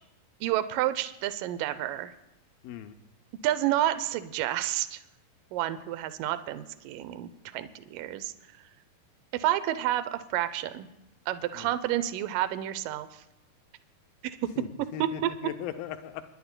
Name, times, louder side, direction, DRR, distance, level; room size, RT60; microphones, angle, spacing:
voice 1, 0.4-2.1 3.4-5.0 5.5-8.3 9.3-10.9 11.3-13.2 14.2-14.4 15.0-15.1, right 13 dB, 80° right, 12 dB, 1.9 m, -30 dB
voice 2, 2.6-3.0 11.5-11.7 14.6-16.2, left 10 dB, 80° left, 8 dB, 2.2 m, -38 dB
29.0 x 11.0 x 2.2 m, 0.91 s
omnidirectional pair, 4.5 m